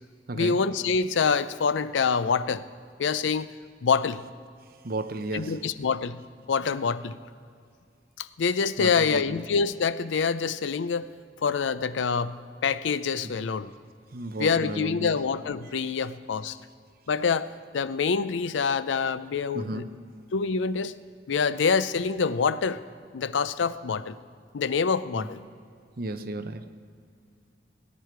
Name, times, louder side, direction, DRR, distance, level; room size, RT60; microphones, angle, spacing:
voice 1, 0.3-2.6 3.0-3.5 3.8-4.2 5.3-6.2 6.5-7.2 8.2-11.1 11.4-12.4 12.6-13.7 14.4-16.6 17.1-19.8 20.3-20.9 21.3-22.8 23.1-24.2 24.5-25.4, left 5 dB, 75° left, 15 dB, 0.5 m, -26 dB
voice 2, 4.8-5.6 8.8-9.4 13.2-13.3 14.1-15.2 19.5-20.0 25.1-25.3 26.0-26.7, right 2 dB, 50° right, 9 dB, 0.8 m, -33 dB
18.5 x 9.8 x 4.6 m, 2.2 s
head